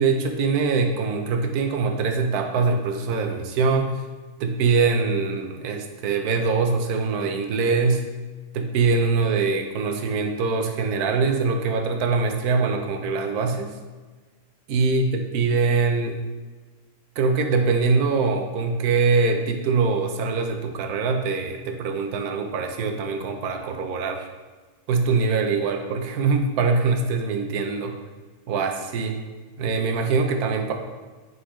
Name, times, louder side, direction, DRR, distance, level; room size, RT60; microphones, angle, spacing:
voice 1, 0.0-3.9 4.4-8.1 8.5-13.7 14.7-16.2 17.2-24.3 24.9-28.0 28.5-29.2 29.6-30.7, right 4 dB, 90° right, 4 dB, 1.2 m, -23 dB
9.1 x 4.0 x 3.1 m, 1.3 s
omnidirectional pair, 1.6 m